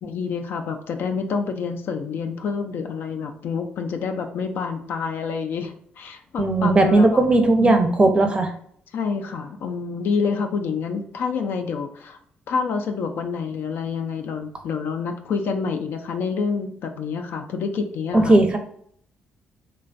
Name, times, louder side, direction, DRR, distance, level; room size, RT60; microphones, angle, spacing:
voice 1, 0.0-7.2 7.6-8.1 8.9-12.2 12.5-18.4, left 5 dB, 70° left, 6 dB, 0.4 m, -28 dB
voice 2, 6.4-8.5 18.1-18.6, right 2 dB, 25° right, 5 dB, 0.5 m, -17 dB
3.1 x 2.2 x 2.5 m, 0.63 s
cardioid pair, 80°, 4 cm